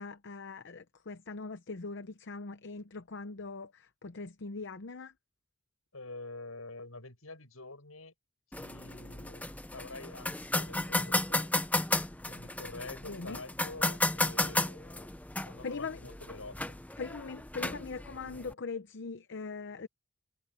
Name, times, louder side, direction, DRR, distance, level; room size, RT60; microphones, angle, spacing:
voice 1, 0.0-5.1 13.1-13.4 15.6-16.0 17.0-19.9, left 4 dB, 55° left, 0.7 m, -41 dB
voice 2, 5.9-8.1 8.5-9.5 9.7-11.7 12.2-15.1 15.4-16.8, left 2 dB, 75° left, 7.7 m, -47 dB
sound 1, 8.5-18.5, left 2 dB, 5° left, 0.7 m, -34 dB
head